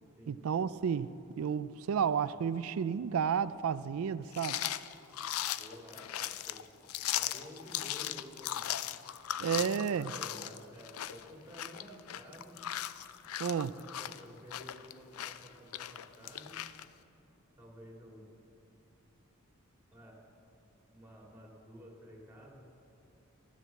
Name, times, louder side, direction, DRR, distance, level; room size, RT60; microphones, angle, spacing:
voice 1, 0.3-1.1 1.4-4.6 9.4-10.1 13.4-13.7, right 7 dB, 80° right, 0.4 m, -31 dB
sound 1, 4.3-16.9, left 12 dB, 85° left, 0.4 m, -38 dB
voice 2, 5.6-6.6 7.1-8.7 9.5-12.7 13.7-16.6 17.6-18.3 19.9-20.2 20.9-22.6, equal, 10° right, 2.4 m, -52 dB
12.0 x 11.0 x 7.5 m
head